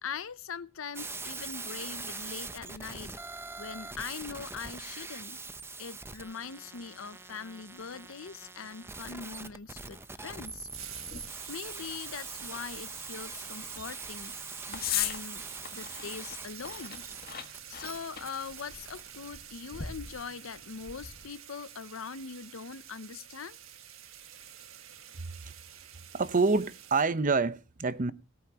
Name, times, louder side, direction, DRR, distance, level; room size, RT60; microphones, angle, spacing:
voice 1, 0.0-3.2 3.6-5.4 5.8-10.7 11.5-14.4 14.7-15.4 15.7-17.1 17.7-23.6, left 6 dB, 75° left, 0.7 m, -42 dB
sound 1, 0.9-19.3, right 3 dB, 10° right, 0.8 m, -43 dB
sound 2, 10.3-21.3, left 9 dB, 50° left, 1.8 m, -41 dB
sound 3, 10.7-27.0, right 10 dB, 80° right, 1.6 m, -48 dB
voice 2, 25.2-25.5 26.1-28.1, right 4 dB, 40° right, 0.9 m, -27 dB
18.0 x 13.5 x 2.9 m
head